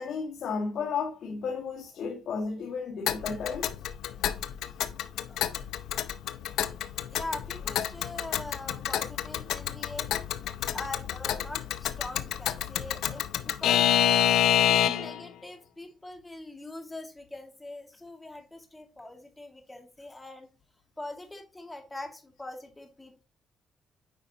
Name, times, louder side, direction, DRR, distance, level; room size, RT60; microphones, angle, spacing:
voice 1, 0.0-3.7, left 5 dB, 65° left, 1.9 m, -33 dB
Alarm / Clock, 3.1-15.2, left 11 dB, 85° left, 0.6 m, -28 dB
voice 2, 5.3-5.6 7.1-10.5 10.7-13.8 14.5-20.5 21.0-23.2, left 2 dB, 15° left, 2.2 m, -42 dB
8.8 x 5.1 x 2.9 m
cardioid pair, 90°, 0 cm